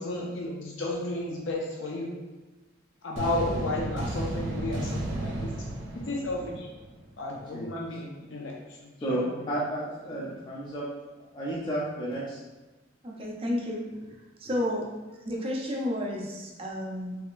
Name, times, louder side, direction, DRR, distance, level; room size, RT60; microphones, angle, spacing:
voice 1, 0.0-2.1 3.0-5.5 6.0-6.7 7.2-9.7 10.1-10.4, left 2 dB, 80° left, -2 dB, 0.5 m, -33 dB
sound 1, 3.2-7.1, right 1 dB, 90° right, 0.6 m, -33 dB
voice 2, 9.0-10.9 11.3-12.4, right 1 dB, 25° left, -7 dB, 0.5 m, -32 dB
voice 3, 13.0-13.8 14.4-14.9 15.3-17.2, left 1 dB, 30° right, -1 dB, 0.6 m, -31 dB
3.5 x 3.4 x 2.5 m, 1.2 s
head